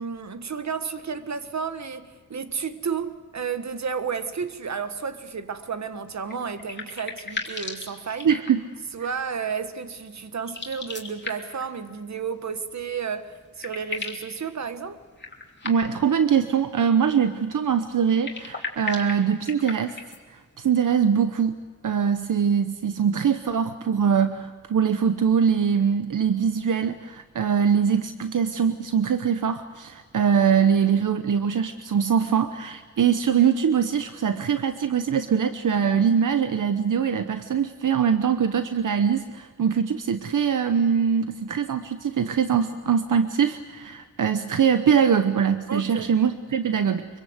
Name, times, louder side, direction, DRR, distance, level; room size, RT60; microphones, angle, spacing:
voice 1, 0.0-8.3 8.9-15.0 45.7-46.1, right 6 dB, 60° right, 1.4 m, -32 dB
sound 1, 6.2-8.8 10.4-11.7 13.0-13.1 13.3-14.3 15.2-16.1 18.1-20.2, left 3 dB, 35° left, 2.9 m, -36 dB
voice 2, 8.2-8.6 15.6-20.0 20.3-21.6 21.8-47.1, right 7 dB, 80° right, 0.9 m, -22 dB
25.5 x 23.5 x 8.0 m
wide cardioid pair, 125°, 31 cm